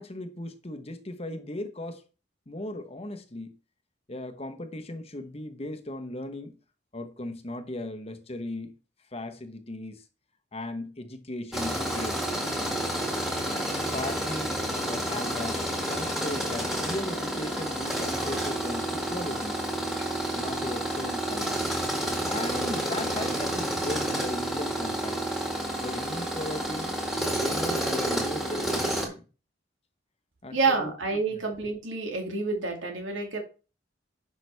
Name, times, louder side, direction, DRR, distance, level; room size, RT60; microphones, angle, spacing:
voice 1, 0.0-2.0 2.5-3.6 4.1-6.6 6.9-8.7 9.1-10.0 10.5-12.3 12.6-12.9 13.5-14.6 14.8-19.6 20.4-21.7 22.2-25.2 25.8-26.9 27.3-29.2 30.4-30.9 31.3-31.5, left 1 dB, 30° left, 1.0 m, -37 dB
Tools, 11.5-29.1, right 1 dB, ahead, 2.0 m, -30 dB
voice 2, 30.5-33.4, right 3 dB, 85° right, 2.5 m, -28 dB
10.5 x 5.9 x 3.4 m
head